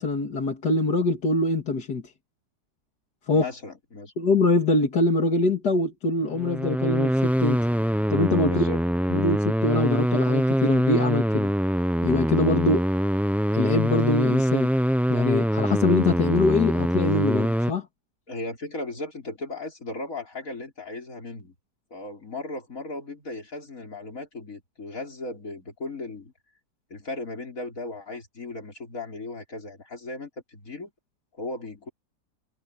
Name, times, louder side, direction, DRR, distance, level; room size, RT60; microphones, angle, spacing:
voice 1, 0.0-2.1 3.3-3.4 4.2-7.7 8.1-8.6 9.1-11.5 12.0-12.8 13.5-14.7 15.1-17.9, left 2 dB, 70° left, 2.8 m, -24 dB
voice 2, 3.3-4.1 8.4-8.8 18.3-21.5 21.9-26.3 26.9-30.9 31.4-31.9, left 2 dB, 50° left, 4.9 m, -36 dB
sound 1, 6.3-17.7, equal, ahead, 0.6 m, -24 dB
omnidirectional pair, 1.8 m